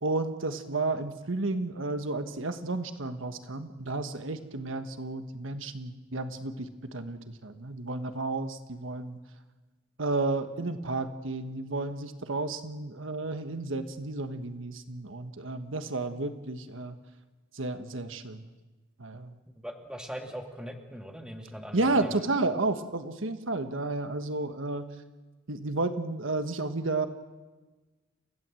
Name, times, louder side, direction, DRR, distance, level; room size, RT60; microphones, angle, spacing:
voice 1, 0.0-9.2 10.0-17.0 17.5-18.5 19.0-19.3 21.7-24.9 25.5-27.1, right 2 dB, 80° right, 9 dB, 1.4 m, -32 dB
voice 2, 19.6-22.2, equal, 5° right, 3 dB, 2.4 m, -41 dB
29.5 x 16.0 x 7.8 m, 1.2 s
head